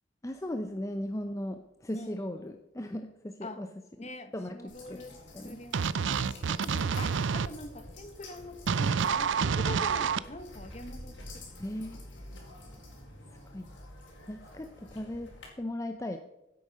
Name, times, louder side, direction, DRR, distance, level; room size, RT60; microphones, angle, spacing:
voice 1, 0.2-3.7 4.0-4.6 4.9-5.0 5.3-5.6 11.6-12.0 13.5-13.7 14.3-16.2, left 1 dB, 15° left, 7 dB, 0.6 m, -37 dB
voice 2, 1.9-2.5 3.4-3.6 4.0-5.2 5.4-5.9 6.5-11.6 11.9-12.0, left 2 dB, 35° left, 9 dB, 1.2 m, -44 dB
sound 1, 4.7-15.5, left 1 dB, 80° left, 4.4 m, -48 dB
sound 2, 5.7-7.5 8.7-10.2, right 6 dB, 80° right, 0.5 m, -28 dB
16.5 x 8.6 x 5.3 m, 0.91 s
head